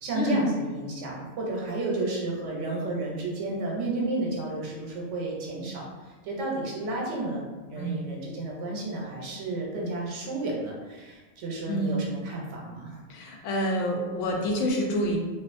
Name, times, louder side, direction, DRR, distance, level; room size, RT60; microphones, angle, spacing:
voice 1, 0.0-5.8 6.2-13.0, right 2 dB, 80° right, -2 dB, 1.0 m, -32 dB
voice 2, 11.6-12.0 13.1-15.2, equal, 85° left, 0 dB, 0.9 m, -27 dB
2.4 x 2.3 x 2.4 m, 1.3 s
omnidirectional pair, 1.2 m